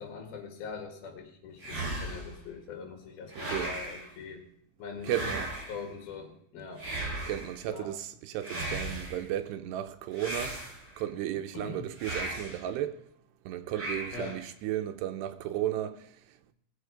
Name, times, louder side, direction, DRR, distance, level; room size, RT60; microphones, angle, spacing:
voice 1, 0.0-4.4 4.8-6.8 7.7-7.9 11.5-11.9 14.1-14.4, left 5 dB, 65° left, 3.7 m, -42 dB
sound 1, 1.6-2.4 3.3-4.1 5.0-5.8 6.8-7.6 8.4-9.2 10.1-11.0 12.0-12.6 13.7-14.4, right 2 dB, 45° right, 7.6 m, -36 dB
voice 2, 3.3-3.8 5.0-5.5 7.2-10.7 11.0-13.0 13.5-16.1, right 12 dB, 90° right, 3.0 m, -34 dB
19.5 x 7.5 x 5.1 m
omnidirectional pair, 4.7 m